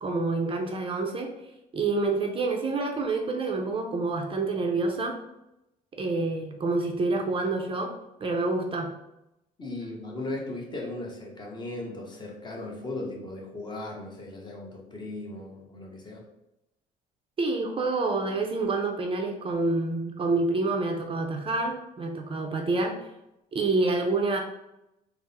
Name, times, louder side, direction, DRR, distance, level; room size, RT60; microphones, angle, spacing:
voice 1, 0.0-1.3 1.7-5.2 5.9-7.9 8.2-9.0 17.4-23.0 23.5-24.4, right 3 dB, 30° right, 3 dB, 0.5 m, -27 dB
voice 2, 9.6-16.3, left 2 dB, 25° left, 0 dB, 0.9 m, -37 dB
3.6 x 2.0 x 4.0 m, 0.88 s
cardioid pair, 110°, 17 cm